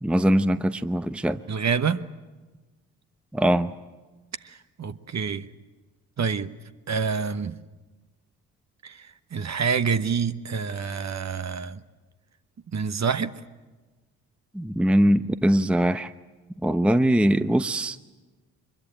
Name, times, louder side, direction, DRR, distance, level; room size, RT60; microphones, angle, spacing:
voice 1, 0.0-1.4 3.3-3.7 14.5-16.1 16.6-18.0, right 1 dB, 5° right, 0.8 m, -21 dB
voice 2, 1.5-2.0 4.4-5.5 6.2-6.5 6.9-7.6 8.8-11.8 12.7-13.3, right 6 dB, 40° right, 1.1 m, -27 dB
23.5 x 22.0 x 8.8 m
supercardioid pair, 50°, 40 cm